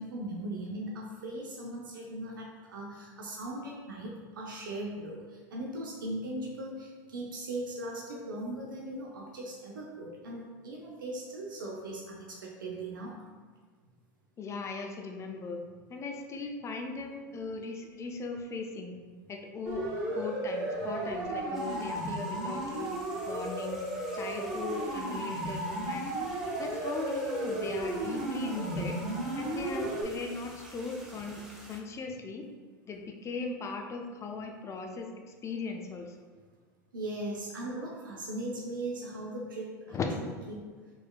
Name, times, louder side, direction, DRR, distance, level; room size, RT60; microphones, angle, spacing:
voice 1, 0.0-13.2 36.9-39.7 40.5-40.7, right 1 dB, 85° right, -2 dB, 0.5 m, -39 dB
voice 2, 14.4-15.6 15.9-19.0 19.3-19.9 20.2-22.9 23.3-23.8 24.2-26.1 26.6-29.0 29.4-32.4 32.8-35.1 35.4-36.1 39.9-40.1, left 4 dB, 25° left, 3 dB, 0.4 m, -38 dB
Siren, 19.7-30.0, right 1 dB, 70° right, 1.3 m, -34 dB
sound 1, 21.5-31.8, right 1 dB, 5° right, 0.8 m, -50 dB
4.3 x 3.2 x 2.2 m, 1.5 s
hypercardioid pair, 90°, 11 cm